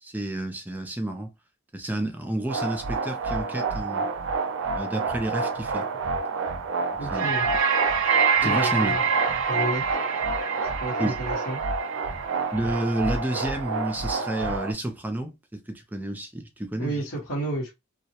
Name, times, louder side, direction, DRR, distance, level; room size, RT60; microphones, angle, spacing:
voice 1, 0.0-1.3 1.7-4.1 4.7-5.9 6.9-7.4 8.4-9.0 11.0-11.2 12.5-17.0, right 1 dB, 10° right, 0.4 m, -30 dB
sound 1, 2.5-14.7, right 5 dB, 70° right, 0.4 m, -26 dB
voice 2, 7.0-7.5 8.4-9.0 9.5-9.8 10.8-11.6 16.8-17.7, right 2 dB, 80° left, 1.0 m, -31 dB
2.2 x 2.0 x 2.8 m
head